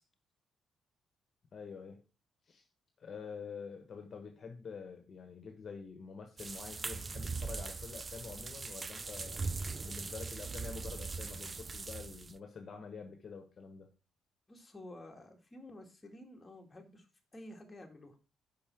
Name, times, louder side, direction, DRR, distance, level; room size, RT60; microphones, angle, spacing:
voice 1, 1.5-2.0 2.5-2.6 3.0-9.4 9.8-13.9, left 5 dB, 45° left, 5 dB, 1.3 m, -47 dB
sound 1, 6.4-12.4, right 4 dB, 30° right, 0.4 m, -40 dB
voice 2, 14.5-17.1 17.3-18.2, left 1 dB, 20° left, 2 dB, 2.0 m, -51 dB
5.7 x 5.3 x 6.0 m, 0.33 s
cardioid pair, 90°, 0 cm